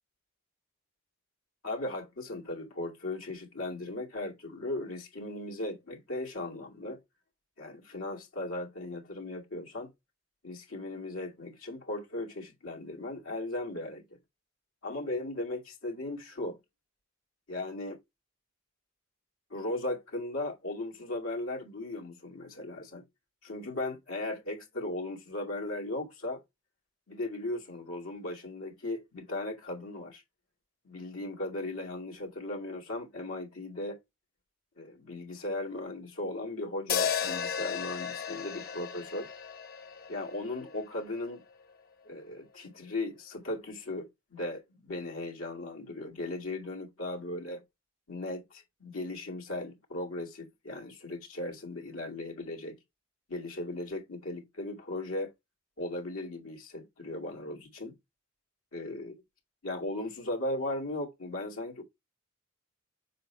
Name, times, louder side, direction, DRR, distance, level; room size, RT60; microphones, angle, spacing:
voice 1, 1.6-7.0 7.6-9.9 10.4-14.2 14.8-16.6 17.5-18.0 19.5-23.0 23.4-26.4 27.1-30.2 30.8-34.0 34.8-39.3 40.1-41.4 42.1-47.6 48.1-52.8 53.3-55.3 55.8-58.0 58.7-59.2 59.6-61.8, left 2 dB, 85° left, 2.3 m, -37 dB
sound 1, 36.9-41.2, left 7 dB, 45° left, 1.2 m, -34 dB
7.4 x 5.7 x 2.3 m
head